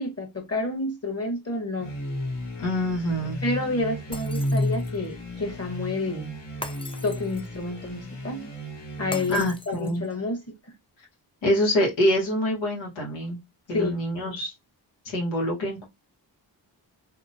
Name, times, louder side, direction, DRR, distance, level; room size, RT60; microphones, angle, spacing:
voice 1, 0.0-1.9 3.4-6.3 7.0-8.5 9.0-10.4 13.7-14.0, left 2 dB, 35° left, 1.2 m, -29 dB
sound 1, 1.8-9.6, left 1 dB, 65° left, 1.4 m, -33 dB
voice 2, 2.6-3.4 9.3-10.0 11.4-13.4 13.7-14.5 15.0-15.8, equal, 90° left, 1.3 m, -25 dB
Shatter, 4.1-5.1 6.6-7.6 9.1-10.1, left 2 dB, 15° left, 0.5 m, -40 dB
2.8 x 2.1 x 2.7 m
cardioid pair, 50°, 45 cm